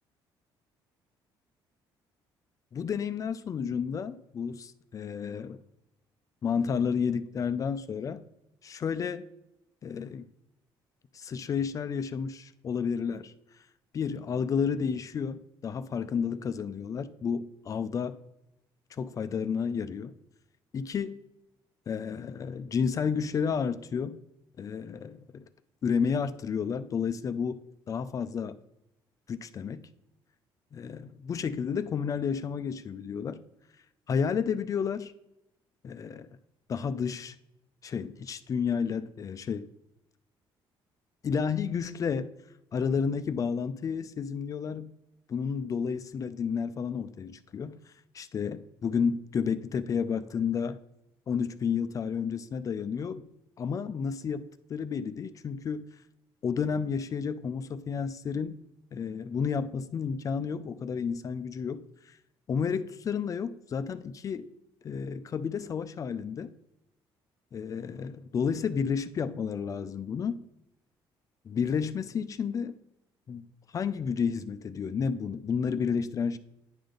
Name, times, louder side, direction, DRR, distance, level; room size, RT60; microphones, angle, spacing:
voice 1, 2.7-5.6 6.4-8.2 8.6-9.3 9.8-10.3 11.1-13.3 13.9-18.2 18.9-20.1 20.7-21.2 21.9-24.2 24.6-25.4 25.8-27.6 27.9-28.6 29.3-29.8 30.7-33.4 34.1-35.1 35.8-36.3 36.7-37.3 37.8-39.7 41.2-42.3 42.7-44.9 45.3-47.8 48.1-50.8 51.3-53.3 53.6-55.9 56.4-58.6 58.9-62.2 62.5-64.5 64.8-66.5 67.5-70.5 71.5-72.8 73.3-73.5 73.7-76.4, left 6 dB, 40° left, 0.4 m, -31 dB
9.8 x 5.2 x 3.8 m
cardioid pair, 120°, 9 cm